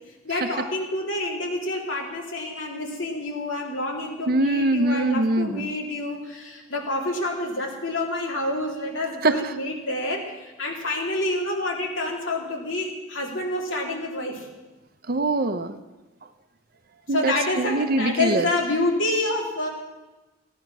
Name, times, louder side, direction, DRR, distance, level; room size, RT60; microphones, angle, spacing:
voice 1, 0.2-14.5 17.1-19.7, left 2 dB, 90° left, 0 dB, 2.9 m, -28 dB
voice 2, 4.3-5.7 9.2-9.3 15.1-15.7 17.1-18.5, right 2 dB, 50° right, 10 dB, 0.7 m, -23 dB
16.0 x 10.5 x 6.1 m, 1.1 s
head